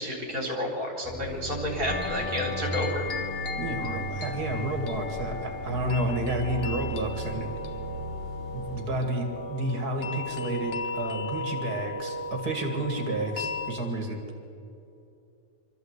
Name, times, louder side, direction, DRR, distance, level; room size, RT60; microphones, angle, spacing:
voice 1, 0.0-3.0, left 1 dB, 60° right, 0 dB, 4.4 m, -30 dB
sound 1, 1.0-8.8, right 1 dB, 10° left, 6.5 m, -37 dB
sound 2, 1.9-13.7, left 3 dB, 40° left, 1.6 m, -35 dB
voice 2, 3.6-7.5 8.5-14.2, right 2 dB, 85° right, 4 dB, 2.5 m, -31 dB
24.0 x 13.5 x 8.1 m, 2.7 s
omnidirectional pair, 1.6 m